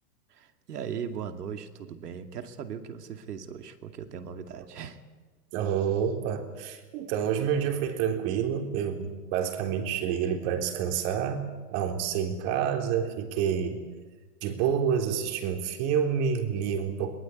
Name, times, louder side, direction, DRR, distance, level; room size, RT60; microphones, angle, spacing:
voice 1, 0.3-5.0, right 7 dB, 75° right, 7 dB, 2.5 m, -38 dB
voice 2, 5.5-13.8 14.4-17.2, right 8 dB, 45° right, 5 dB, 3.8 m, -28 dB
22.5 x 18.5 x 9.3 m, 1.3 s
hypercardioid pair, 130°, 47 cm